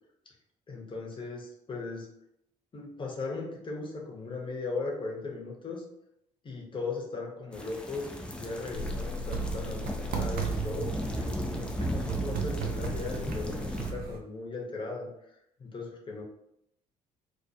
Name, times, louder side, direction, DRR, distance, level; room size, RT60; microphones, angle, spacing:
voice 1, 0.7-2.1 2.7-5.8 6.4-15.1 15.6-16.2, left 3 dB, 25° left, -1 dB, 0.8 m, -38 dB
sound 1, 7.5-13.9, equal, 5° left, 0.4 m, -36 dB
sound 2, 8.7-14.2, right 4 dB, 55° right, 0.5 m, -35 dB
2.3 x 2.2 x 2.7 m, 0.76 s
hypercardioid pair, 50°, 18 cm